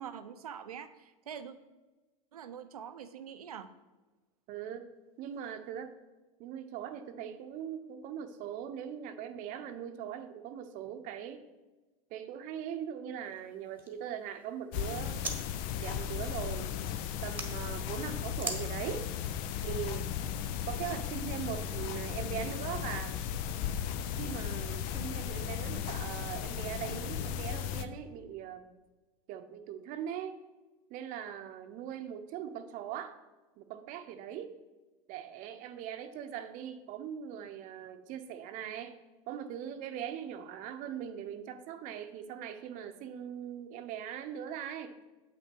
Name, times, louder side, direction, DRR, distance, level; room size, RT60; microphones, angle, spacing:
voice 1, 0.0-1.6 2.3-3.7, right 8 dB, 90° right, 11 dB, 0.7 m, -44 dB
voice 2, 4.5-4.9 5.2-5.9 6.4-11.4 12.1-15.2 15.8-16.8 17.2-19.1 19.6-20.1 20.7-23.2 24.2-28.6 29.3-30.4 30.9-33.2 33.6-34.5 35.1-39.0 39.3-45.0, right 9 dB, 45° right, 9 dB, 0.8 m, -40 dB
sound 1, 13.2-15.4 15.7-17.5 18.3-18.6, right 3 dB, 10° right, 1.2 m, -43 dB
sound 2, 14.7-27.8, left 9 dB, 50° left, 0.6 m, -36 dB
7.5 x 6.0 x 4.5 m, 1.2 s
hypercardioid pair, 105°, 18 cm